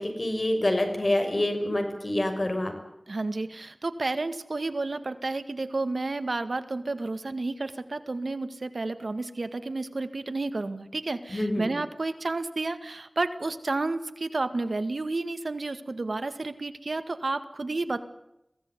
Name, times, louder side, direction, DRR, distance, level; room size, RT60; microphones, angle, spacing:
voice 1, 0.0-2.7 11.3-11.7, left 1 dB, 45° left, 5 dB, 6.6 m, -26 dB
voice 2, 3.1-18.0, right 3 dB, 75° right, 11 dB, 1.9 m, -31 dB
23.5 x 17.0 x 9.8 m, 0.84 s
wide cardioid pair, 50°, 0 cm